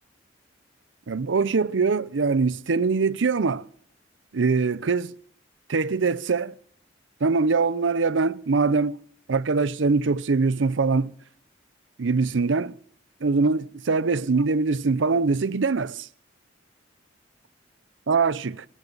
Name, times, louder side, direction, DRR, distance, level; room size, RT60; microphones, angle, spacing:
voice 1, 1.1-3.6 4.3-5.1 5.7-6.5 7.2-9.0 9.3-11.1 12.0-12.7 13.2-16.1 18.1-18.6, right 4 dB, 80° right, 0.6 m, -23 dB
28.0 x 12.0 x 4.0 m
head